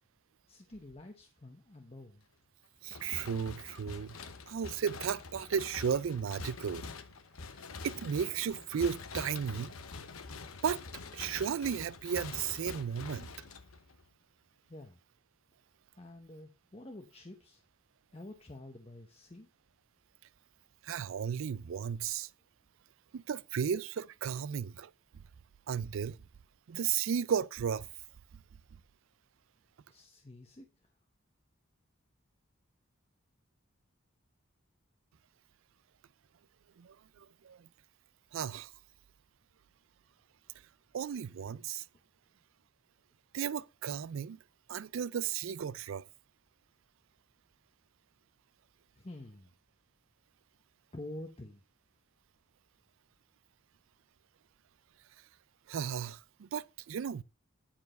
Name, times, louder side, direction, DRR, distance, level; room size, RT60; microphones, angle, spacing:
voice 1, 0.5-2.2 14.7-15.0 16.0-17.6 18.1-19.5 24.5-24.6 29.9-30.9 48.9-49.5 50.9-51.6, left 1 dB, 30° left, 0.8 m, -48 dB
voice 2, 2.8-4.2 4.5-6.8 7.8-9.7 10.6-10.8 11.1-13.3 20.8-22.3 23.1-24.9 25.7-26.2 26.7-27.9 36.8-37.7 38.3-38.7 40.9-41.8 43.3-44.4 44.7-46.1 55.7-57.2, right 7 dB, 70° right, 0.4 m, -34 dB
sound 1, 2.9-14.1, left 4 dB, 85° left, 0.9 m, -46 dB
10.0 x 4.7 x 5.3 m
head